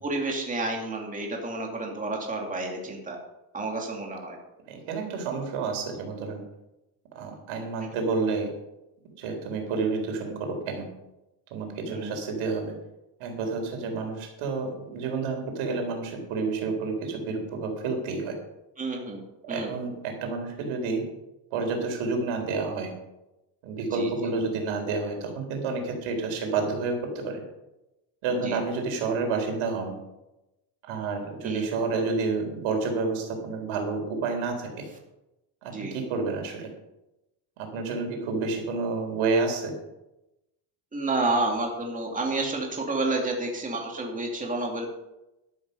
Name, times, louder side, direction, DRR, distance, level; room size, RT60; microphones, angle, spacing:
voice 1, 0.0-3.2 3.5-4.4 11.8-12.1 18.8-19.2 19.5-19.7 23.8-24.1 28.4-28.6 31.4-31.7 35.7-35.9 40.9-44.9, right 2 dB, 15° right, 0 dB, 2.5 m, -30 dB
voice 2, 4.7-6.4 7.1-8.5 9.2-10.9 11.5-12.7 13.2-18.3 19.4-21.0 21.5-22.9 23.6-27.4 28.2-30.0 30.9-34.7 35.6-36.7 37.6-39.7, right 4 dB, 85° right, 3 dB, 4.1 m, -29 dB
12.0 x 12.0 x 5.5 m, 0.94 s
cardioid pair, 155°, 48 cm